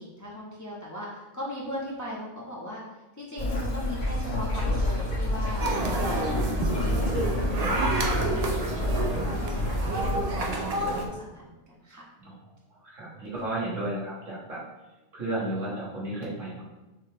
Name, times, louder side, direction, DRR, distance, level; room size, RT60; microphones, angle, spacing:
voice 1, 0.0-2.8 3.2-7.3 7.7-9.1 9.4-10.7 11.0-11.5 11.8-12.0 15.3-15.7, equal, 20° left, -5 dB, 0.6 m, -39 dB
sound 1, 3.4-10.1, left 1 dB, 80° left, 1.4 m, -28 dB
sound 2, 5.6-11.1, right 2 dB, 55° right, 0.4 m, -29 dB
voice 2, 12.8-14.6 15.1-16.6, right 2 dB, 75° right, -5 dB, 1.7 m, -33 dB
6.3 x 2.3 x 3.3 m, 1.1 s
omnidirectional pair, 1.3 m